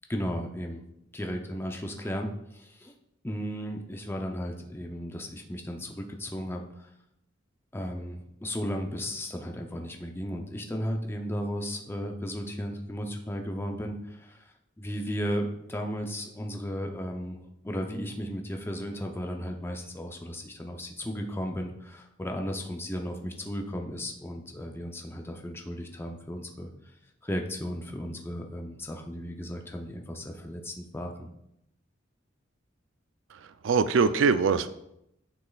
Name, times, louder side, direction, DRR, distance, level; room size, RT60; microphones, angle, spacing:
voice 1, 0.1-0.8 1.1-2.9 3.2-6.9 7.7-17.4 17.6-26.7 27.2-31.3, equal, 10° left, 3 dB, 0.5 m, -35 dB
voice 2, 33.3-34.7, right 5 dB, 75° right, 12 dB, 0.4 m, -23 dB
9.5 x 6.0 x 2.3 m, 0.80 s
head